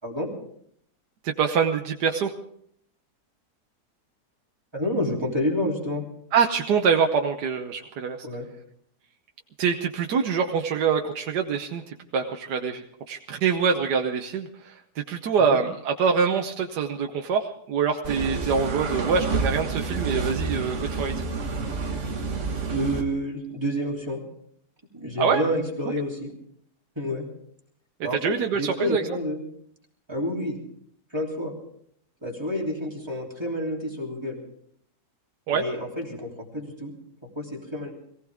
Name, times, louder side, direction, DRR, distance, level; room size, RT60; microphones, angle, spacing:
voice 1, 1.2-2.3 6.3-8.3 9.6-21.2 25.2-25.4 28.1-29.0 35.5-35.6, right 6 dB, 85° right, 3 dB, 1.5 m, -25 dB
voice 2, 4.7-6.0 8.2-8.5 15.4-15.6 22.7-24.2 24.9-26.3 26.9-27.3 28.0-29.4 30.1-30.6 31.1-31.5 32.2-34.4 35.5-36.9 37.3-37.9, equal, 15° right, -2 dB, 3.3 m, -29 dB
sound 1, 18.0-23.0, right 4 dB, 50° right, 1.7 m, -29 dB
22.0 x 16.5 x 3.6 m, 0.67 s
omnidirectional pair, 1.7 m